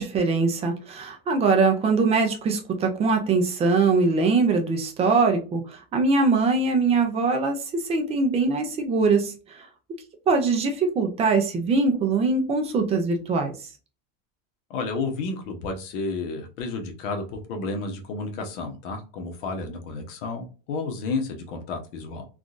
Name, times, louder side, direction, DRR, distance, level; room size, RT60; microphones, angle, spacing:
voice 1, 0.0-9.7 10.3-13.5, right 4 dB, 15° right, 4 dB, 0.3 m, -22 dB
voice 2, 14.7-22.3, left 3 dB, 65° left, 4 dB, 1.0 m, -31 dB
3.6 x 2.4 x 2.5 m, 0.34 s
supercardioid pair, 155°, 39 cm